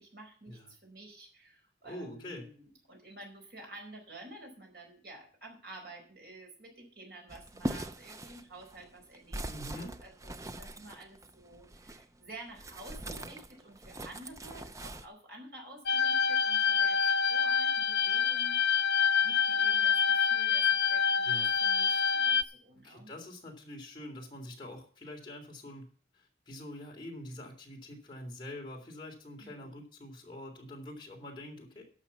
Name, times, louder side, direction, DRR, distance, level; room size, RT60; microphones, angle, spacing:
voice 1, 0.0-18.9 19.2-23.1 29.4-29.8, right 2 dB, 65° right, 2 dB, 4.8 m, -51 dB
voice 2, 1.8-2.5 9.5-9.9 21.2-21.6 22.8-25.9 26.1-31.8, left 1 dB, 25° left, 0 dB, 3.3 m, -45 dB
sound 1, 7.3-12.1 12.5-15.1, right 1 dB, 20° right, 0.5 m, -41 dB
sound 2, 15.9-22.4, left 7 dB, 75° left, 0.6 m, -27 dB
11.5 x 6.6 x 7.2 m, 0.43 s
head